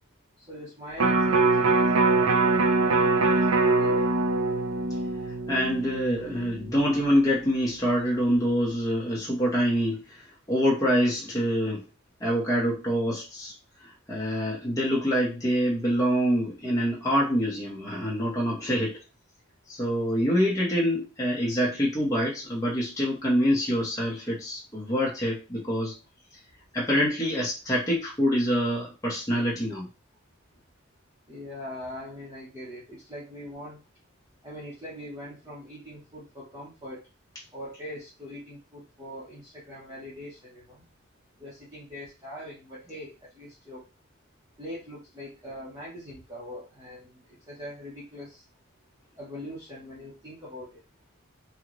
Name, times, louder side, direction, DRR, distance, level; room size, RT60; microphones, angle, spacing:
voice 1, 0.5-4.1 31.3-33.8 34.4-37.0 37.5-40.8 41.4-43.8 44.6-47.1 47.5-48.4 49.2-50.7, left 1 dB, 15° right, -8 dB, 1.1 m, -42 dB
Electric guitar, 1.0-7.2 7.6-7.7, right 3 dB, 75° right, 0.5 m, -23 dB
voice 2, 5.5-11.8 12.2-13.5 14.1-19.0 19.7-25.9 26.7-29.9, equal, 15° left, -5 dB, 1.2 m, -26 dB
4.5 x 2.4 x 3.1 m, 0.29 s
head